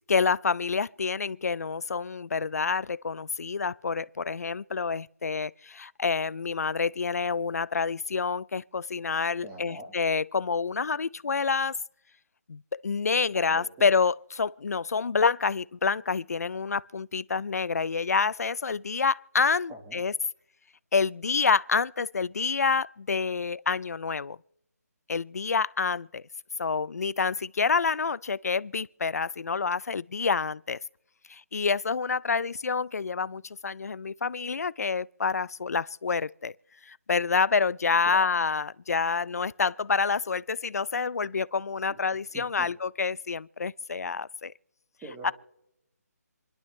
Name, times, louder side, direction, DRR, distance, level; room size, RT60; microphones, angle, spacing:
voice 1, 0.1-11.7 12.5-20.1 20.9-24.4 25.1-26.2 26.6-30.8 31.3-36.5 36.9-44.5 45.2-45.3, left 5 dB, 65° left, 0.4 m, -28 dB
voice 2, 9.4-9.9 13.3-13.9 19.7-20.0 38.0-38.3 41.9-42.0 42.3-42.7 45.0-45.3, right 2 dB, 5° right, 1.5 m, -43 dB
27.5 x 11.5 x 3.2 m
hypercardioid pair, 175°, 9 cm